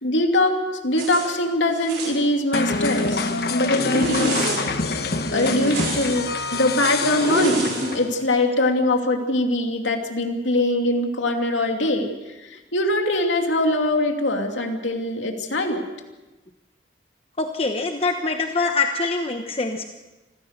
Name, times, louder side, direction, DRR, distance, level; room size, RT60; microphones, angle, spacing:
voice 1, 0.0-0.6 0.8-4.5 4.9-5.0 5.3-12.1 12.4-15.8, left 1 dB, 90° left, 3 dB, 2.7 m, -22 dB
Zipper (clothing), 0.9-1.3 1.7-2.2 2.7-3.4 3.7-4.6 5.3-6.2 7.0-8.0, right 2 dB, 65° right, 5.5 m, -28 dB
sound 1, 2.5-8.2, left 3 dB, 55° left, 1.3 m, -26 dB
voice 2, 17.4-19.8, left 3 dB, 30° left, 5 dB, 1.1 m, -24 dB
26.0 x 16.0 x 6.6 m, 1.1 s
head